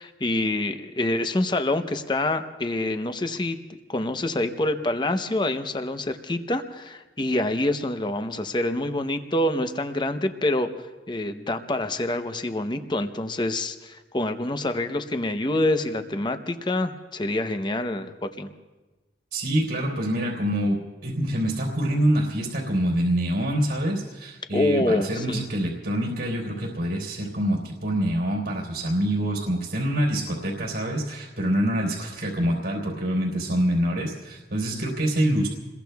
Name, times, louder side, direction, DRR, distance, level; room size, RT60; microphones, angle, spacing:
voice 1, 0.0-10.7 11.1-18.5 24.5-25.4, left 1 dB, 25° left, 8 dB, 0.8 m, -26 dB
voice 2, 19.3-35.5, right 1 dB, 85° right, -4 dB, 3.7 m, -25 dB
28.5 x 21.5 x 2.3 m, 1.2 s
head